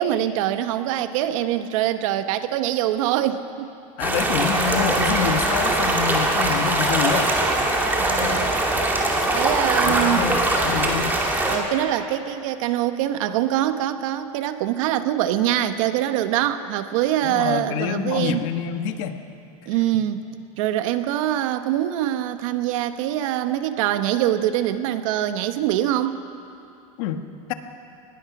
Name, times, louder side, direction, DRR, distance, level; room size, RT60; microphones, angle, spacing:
voice 1, 0.0-3.7 8.0-8.6 9.3-10.3 11.5-18.4 19.7-20.2 20.6-26.2, right 12 dB, 70° right, 10 dB, 1.2 m, -24 dB
voice 2, 4.0-7.3 8.2-8.5 9.8-11.2 17.2-19.2 27.0-27.2, left 8 dB, 65° left, 8 dB, 1.4 m, -27 dB
sound 1, 4.0-11.6, right 2 dB, 10° right, 2.3 m, -21 dB
21.5 x 20.0 x 6.0 m, 2.6 s
supercardioid pair, 155°, 18 cm